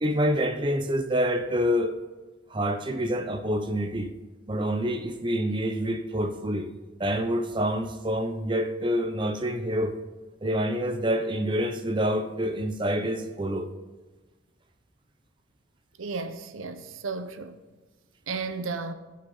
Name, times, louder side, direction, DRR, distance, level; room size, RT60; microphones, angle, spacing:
voice 1, 0.0-2.0 2.5-4.1 4.5-6.7 7.0-9.9 10.4-13.7, equal, 25° right, 0.6 m, -27 dB
voice 2, 16.0-17.6 18.3-18.9, right 4 dB, 85° right, 0.7 m, -33 dB
16.0 x 5.5 x 3.9 m
head